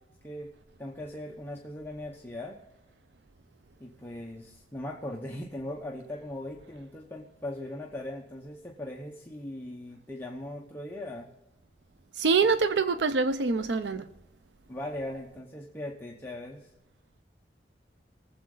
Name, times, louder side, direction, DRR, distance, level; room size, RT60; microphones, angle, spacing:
voice 1, 0.8-2.6 3.8-11.3 14.7-16.7, left 1 dB, 10° left, 0.9 m, -39 dB
voice 2, 12.2-14.0, right 4 dB, 85° right, 0.5 m, -25 dB
20.5 x 7.6 x 3.9 m
head